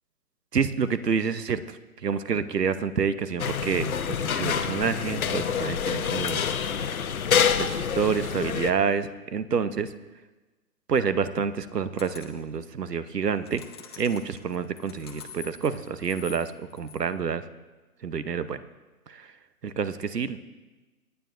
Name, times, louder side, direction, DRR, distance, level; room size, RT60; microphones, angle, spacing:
voice 1, 0.5-6.4 7.6-9.9 10.9-13.6 14.0-17.5 18.0-18.6 19.1-19.3 19.6-20.4, right 6 dB, 85° right, 13 dB, 0.9 m, -28 dB
sound 1, 3.4-8.7, left 7 dB, 65° left, 0.9 m, -27 dB
sound 2, 12.0-12.5 13.2-17.0, left 6 dB, 15° left, 0.6 m, -46 dB
27.5 x 9.4 x 2.5 m, 1.2 s
figure-of-eight pair, 145°, 47 cm